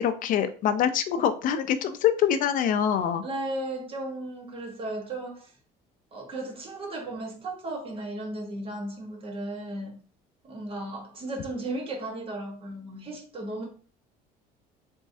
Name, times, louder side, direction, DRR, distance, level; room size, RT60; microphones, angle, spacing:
voice 1, 0.0-3.2, left 8 dB, 50° left, 0.5 m, -24 dB
voice 2, 3.2-5.5 6.1-9.9 10.4-13.7, right 2 dB, 35° right, 1.2 m, -35 dB
3.6 x 3.1 x 2.6 m
cardioid pair, 130°, 17 cm